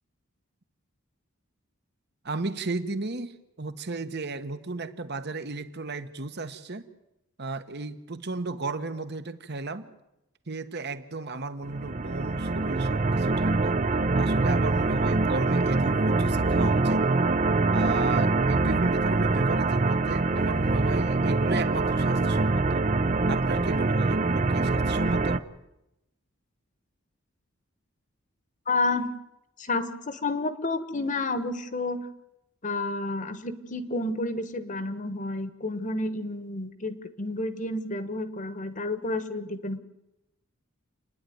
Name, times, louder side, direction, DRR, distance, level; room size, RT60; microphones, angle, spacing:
voice 1, 2.2-6.8 7.4-9.9 10.5-13.8 14.2-17.1 17.7-22.8 23.3-25.4, right 3 dB, 55° right, 1.3 m, -34 dB
sound 1, 11.7-25.4, right 3 dB, 35° right, 0.7 m, -24 dB
voice 2, 28.7-29.1 29.6-32.1 32.6-39.8, left 2 dB, 40° left, 1.3 m, -30 dB
28.5 x 10.5 x 9.4 m
head